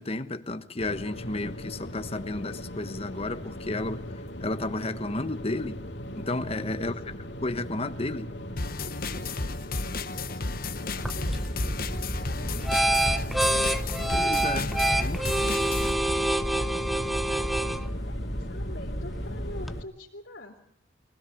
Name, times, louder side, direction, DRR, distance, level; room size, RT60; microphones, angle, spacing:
voice 1, 0.0-4.0 4.4-5.8 6.1-6.9 7.4-8.3 14.1-14.7 15.0-15.2, left 2 dB, 35° left, 1.2 m, -32 dB
sound 1, 0.8-19.9, left 1 dB, 70° left, 2.3 m, -39 dB
voice 2, 6.8-7.2 9.0-9.5 9.9-11.4 12.2-13.3 14.5-14.8 15.1-20.6, left 1 dB, 85° left, 3.3 m, -47 dB
sound 2, 8.6-15.9, left 3 dB, 55° left, 1.3 m, -33 dB
sound 3, 11.0-19.8, right 1 dB, ahead, 0.8 m, -28 dB
23.5 x 16.5 x 8.2 m
head